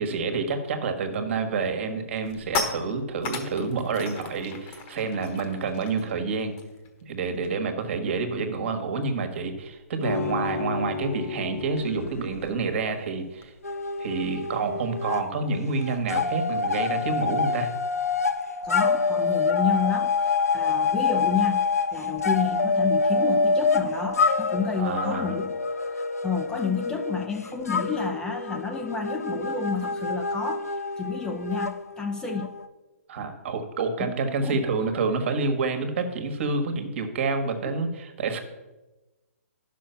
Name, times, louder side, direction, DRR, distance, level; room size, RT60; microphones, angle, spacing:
voice 1, 0.0-6.5 7.1-13.5 14.0-17.7 24.8-25.4 33.1-38.4, right 4 dB, 50° right, 7 dB, 1.5 m, -28 dB
sound 1, 1.2-1.4 1.8-7.7 8.0-8.2 8.5-13.5, left 4 dB, 30° left, 1.2 m, -38 dB
sound 2, 10.0-12.8 14.3-14.4, left 6 dB, 60° left, 0.7 m, -33 dB
sound 3, 13.6-15.3 15.5-32.6, left 4 dB, 90° left, 0.8 m, -26 dB
voice 2, 18.6-25.6 25.8-30.6 31.0-32.5 34.4-34.7 37.7-37.9, left 5 dB, 10° left, 4 dB, 0.6 m, -30 dB
10.0 x 6.3 x 5.7 m, 1.1 s
hypercardioid pair, 145°, 8 cm